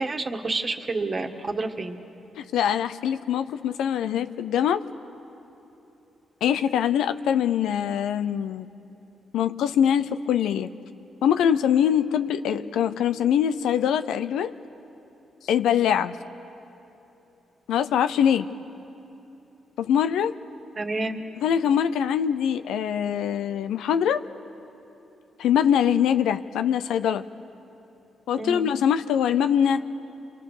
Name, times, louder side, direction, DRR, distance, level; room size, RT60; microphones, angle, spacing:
voice 1, 0.0-2.0 20.8-21.2 28.4-28.7, right 3 dB, 35° right, 5 dB, 1.6 m, -29 dB
voice 2, 2.4-4.9 6.4-8.7 9.3-10.7 11.2-14.5 15.4-16.2 17.7-18.5 19.8-20.4 21.4-24.2 25.4-27.2 28.3-29.8, left 9 dB, 90° left, 11 dB, 0.6 m, -23 dB
28.0 x 23.5 x 6.6 m, 3.0 s
cardioid pair, 75°, 0 cm